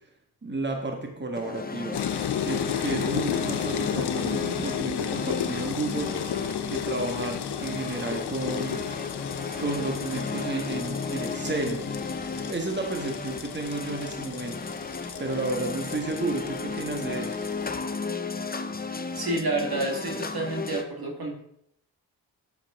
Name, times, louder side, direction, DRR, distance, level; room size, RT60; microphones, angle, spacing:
voice 1, 0.4-2.0 2.4-6.2 6.7-8.8 9.5-12.0 12.5-14.6 15.2-17.4, right 2 dB, 25° right, 3 dB, 1.7 m, -32 dB
sound 1, 1.3-20.8, left 4 dB, 20° left, 0.8 m, -34 dB
sound 2, 1.9-17.9, left 9 dB, 70° left, 0.8 m, -34 dB
voice 2, 18.9-21.4, right 2 dB, 60° right, 2 dB, 2.0 m, -29 dB
8.6 x 7.3 x 3.7 m, 0.72 s
cardioid pair, 50°, 41 cm